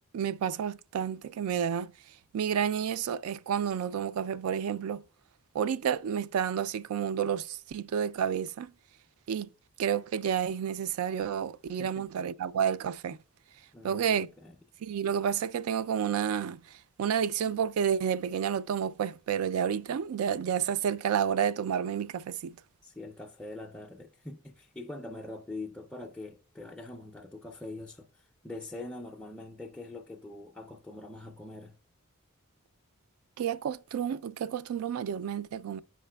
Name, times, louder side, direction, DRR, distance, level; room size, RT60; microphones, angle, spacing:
voice 1, 0.1-1.9 2.3-5.0 5.5-8.7 9.3-9.5 9.8-13.2 13.8-14.3 14.8-16.6 17.0-22.5 33.4-35.8, right 8 dB, 80° right, 0.3 m, -30 dB
voice 2, 13.7-14.6 22.8-28.1 28.4-31.8, left 2 dB, 5° left, 0.3 m, -43 dB
14.5 x 4.9 x 2.2 m
head